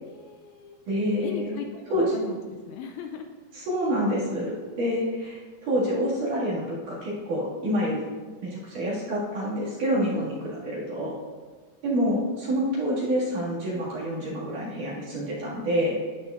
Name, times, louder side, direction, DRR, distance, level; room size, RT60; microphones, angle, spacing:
voice 1, 0.0-0.8 1.2-2.4 2.7-3.3 10.1-10.2, left 7 dB, 85° left, 5 dB, 2.8 m, -38 dB
voice 2, 0.9-1.5 1.9-2.1 3.5-4.5 4.8-8.0 8.4-11.1 11.8-16.0, equal, 50° right, -8 dB, 3.1 m, -27 dB
12.0 x 9.4 x 2.5 m, 1.4 s
omnidirectional pair, 5.6 m